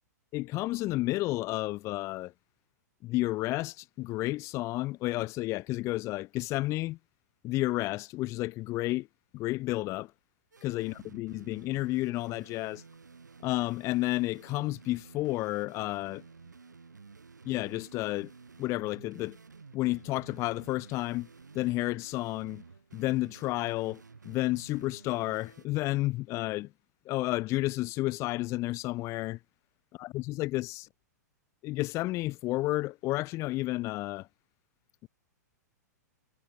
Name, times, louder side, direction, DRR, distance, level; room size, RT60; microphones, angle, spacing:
voice 1, 0.3-2.3 3.0-7.0 7.4-9.1 9.3-10.1 10.6-12.8 13.4-16.2 17.5-18.3 18.6-19.4 19.7-21.3 21.5-22.6 22.9-26.7 27.1-29.4 30.0-30.9 31.6-34.3, left 19 dB, 30° left, 0.4 m, -31 dB
sound 1, 10.5-25.7, right 4 dB, 90° right, 5.5 m, -53 dB
hypercardioid pair, 105°, 9 cm